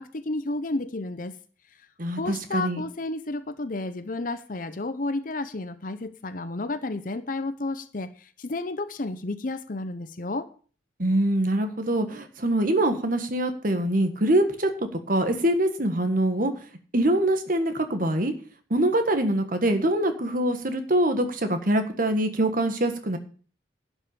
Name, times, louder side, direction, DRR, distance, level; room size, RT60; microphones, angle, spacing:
voice 1, 0.0-1.3 2.1-10.5, left 2 dB, 50° left, 11 dB, 0.7 m, -31 dB
voice 2, 2.0-2.8 11.0-16.5 16.9-18.3 18.7-23.2, right 1 dB, 50° right, 7 dB, 1.6 m, -24 dB
11.5 x 5.5 x 8.5 m, 0.41 s
head